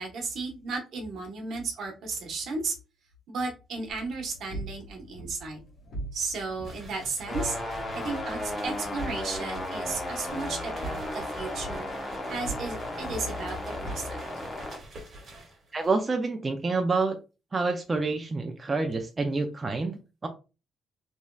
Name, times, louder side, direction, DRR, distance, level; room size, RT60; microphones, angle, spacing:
voice 1, 0.0-2.7 3.3-5.6 6.1-7.6 7.9-11.9 12.3-14.3, right 3 dB, 70° right, 2 dB, 1.0 m, -34 dB
sound 1, 3.9-14.5, right 2 dB, 60° left, 1.3 m, -42 dB
sound 2, 6.6-16.0, right 1 dB, 50° right, 1.3 m, -48 dB
sound 3, 7.3-14.8, left 1 dB, 25° left, 0.9 m, -35 dB
voice 2, 15.7-17.2 17.5-20.3, right 3 dB, 30° right, 4 dB, 0.4 m, -28 dB
3.1 x 2.7 x 2.3 m, 0.31 s
cardioid pair, 90°, 0 cm